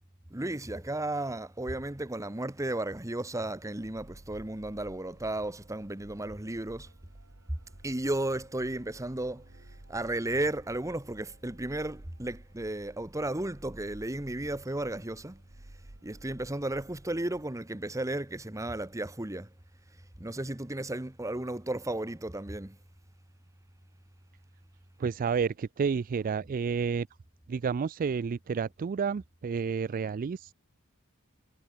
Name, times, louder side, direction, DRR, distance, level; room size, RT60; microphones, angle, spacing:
voice 1, 0.3-6.9 7.8-15.4 16.0-19.5 20.2-22.8, right 1 dB, 15° right, 1.2 m, -34 dB
sound 1, 3.7-17.5, right 1 dB, 70° right, 2.0 m, -54 dB
voice 2, 25.0-27.1 27.5-30.5, right 6 dB, 40° right, 0.3 m, -30 dB
head